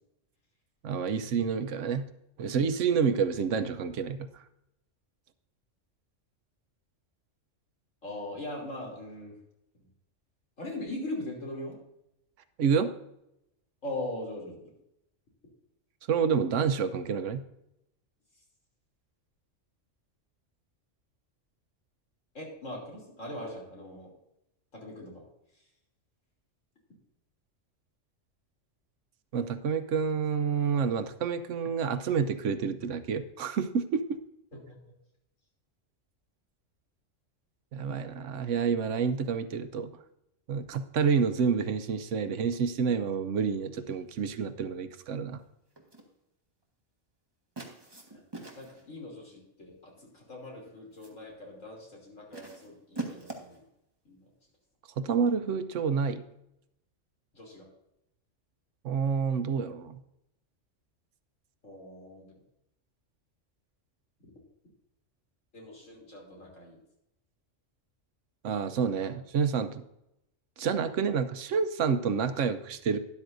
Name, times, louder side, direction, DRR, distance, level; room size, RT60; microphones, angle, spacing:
voice 1, 0.8-2.1 2.4-4.2 12.6-12.9 16.1-17.4 29.3-34.2 37.7-39.9 40.5-45.4 55.0-56.2 58.8-60.0 68.4-69.8 70.6-73.0, right 6 dB, 75° right, 10 dB, 1.1 m, -28 dB
voice 2, 8.0-9.4 9.7-9.9 10.6-11.8 13.8-14.7 22.3-24.1 24.7-25.3 25.5-25.6 34.7-34.8 48.1-48.2 48.5-53.6 54.1-54.3 57.3-57.7 61.6-62.4 64.2-64.3 65.5-66.8 69.0-69.1, left 1 dB, 85° left, -1 dB, 3.5 m, -41 dB
sound 1, 45.8-46.1 47.6-48.9 49.9-50.3 50.7-51.2 52.3-53.6, right 2 dB, 20° right, 1.3 m, -42 dB
12.5 x 11.0 x 2.6 m, 0.82 s
omnidirectional pair, 1.3 m